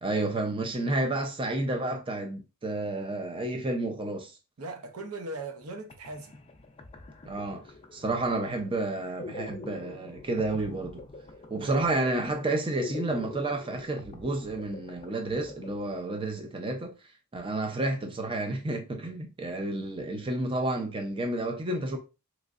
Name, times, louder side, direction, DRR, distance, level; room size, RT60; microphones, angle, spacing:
voice 1, 0.0-4.4 7.2-7.6 7.9-11.0 11.5-16.9 17.3-22.0, right 2 dB, 25° right, 0.5 m, -30 dB
voice 2, 4.6-6.4 11.6-11.8, right 2 dB, 80° right, 0.7 m, -39 dB
sound 1, 5.6-5.7 5.9-16.5, left 3 dB, 25° left, 0.4 m, -45 dB
3.6 x 3.1 x 2.4 m
head